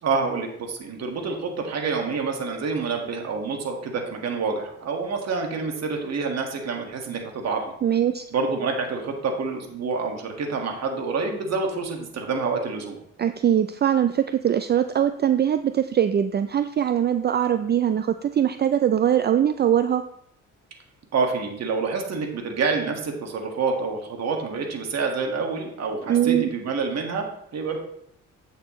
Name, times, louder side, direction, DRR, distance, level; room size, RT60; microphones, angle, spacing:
voice 1, 0.0-7.7 8.3-13.0 21.1-27.3 27.5-27.8, right 4 dB, 60° right, 2 dB, 1.8 m, -27 dB
voice 2, 7.8-8.2 13.2-20.1 26.1-26.5, right 9 dB, 35° right, 10 dB, 0.4 m, -22 dB
8.4 x 6.5 x 3.1 m, 0.72 s
cardioid pair, 90°, 30 cm